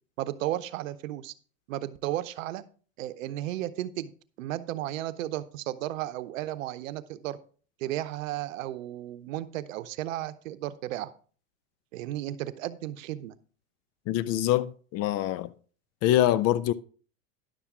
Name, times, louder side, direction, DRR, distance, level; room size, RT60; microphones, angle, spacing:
voice 1, 0.2-1.3 1.7-2.6 3.0-4.1 4.4-7.4 7.8-11.1 11.9-13.3, right 14 dB, 75° right, 0.8 m, -34 dB
voice 2, 14.1-15.5 16.0-16.7, left 13 dB, 40° left, 0.5 m, -24 dB
11.0 x 7.1 x 3.6 m
hypercardioid pair, 110°, 40 cm